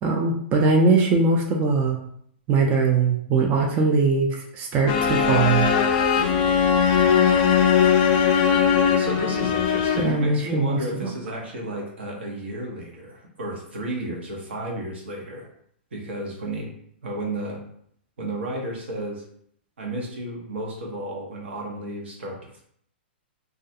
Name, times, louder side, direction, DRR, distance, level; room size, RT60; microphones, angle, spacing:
voice 1, 0.0-2.0 2.5-5.7 10.0-10.8, right 4 dB, 25° right, 1 dB, 0.4 m, -21 dB
sound 1, 4.9-10.3, left 7 dB, 40° left, 0.4 m, -20 dB
voice 2, 8.9-15.5 15.9-16.7 17.0-17.6 18.2-19.2 19.8-22.6, right 1 dB, 80° right, -1 dB, 0.8 m, -32 dB
2.3 x 2.2 x 2.7 m, 0.67 s
hypercardioid pair, 125°, 6 cm